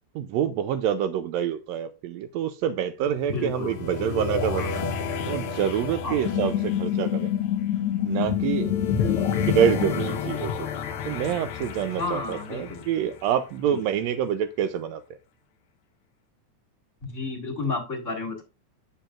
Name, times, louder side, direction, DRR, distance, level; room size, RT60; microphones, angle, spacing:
voice 1, 0.1-4.6 5.3-7.3 8.0-9.0 9.5-10.7 11.0-15.0, right 9 dB, 85° right, 11 dB, 1.5 m, -26 dB
sound 1, 3.0-13.8, left 6 dB, 65° left, 1.4 m, -32 dB
voice 2, 3.3-3.8 4.6-4.8 6.0-6.3 9.0-9.3 11.9-12.8 13.7-13.8 17.0-18.4, left 3 dB, 30° left, 1 dB, 1.8 m, -32 dB
sound 2, 6.2-10.2, left 11 dB, 85° left, 1.5 m, -27 dB
9.3 x 6.9 x 2.4 m, 0.28 s
omnidirectional pair, 3.7 m